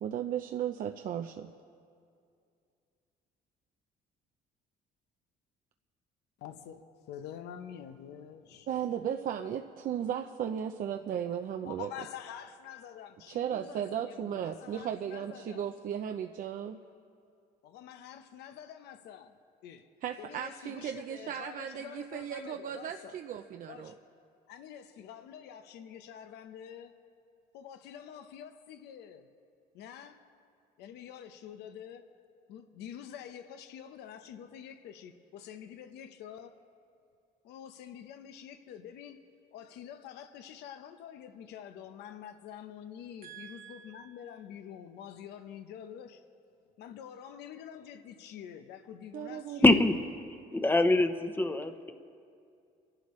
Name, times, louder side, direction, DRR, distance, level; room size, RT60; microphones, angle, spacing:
voice 1, 0.0-1.5 8.7-11.9 13.3-16.8 20.0-23.9 43.2-44.1 49.1-49.6, right 9 dB, 55° right, 5 dB, 0.6 m, -36 dB
voice 2, 6.4-8.7 11.6-15.7 17.6-19.4 19.6-19.8 20.2-23.2 23.7-24.0 24.5-26.9 27.5-29.3 29.7-30.2 30.8-32.0 32.5-36.6 37.4-39.2 39.5-46.2 46.8-49.8, left 9 dB, 85° left, 8 dB, 0.9 m, -47 dB
voice 3, 49.6-49.9 50.5-51.9, left 2 dB, 10° left, 8 dB, 0.9 m, -24 dB
28.5 x 11.5 x 3.2 m, 2.4 s
cardioid pair, 110°, 17 cm